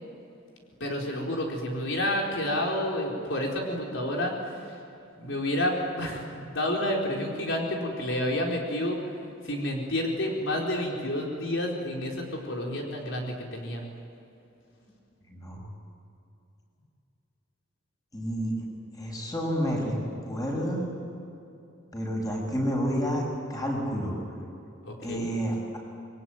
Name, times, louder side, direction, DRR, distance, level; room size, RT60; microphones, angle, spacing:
voice 1, 0.8-4.3 5.2-9.0 9.4-13.8 24.9-25.3, left 1 dB, 75° left, -1 dB, 4.6 m, -29 dB
voice 2, 15.3-15.7 18.1-18.5 19.0-19.9 20.2-20.8 21.9-23.2 23.5-24.2 25.0-25.6, equal, 20° left, 0 dB, 6.4 m, -29 dB
28.0 x 22.5 x 9.2 m, 2.7 s
head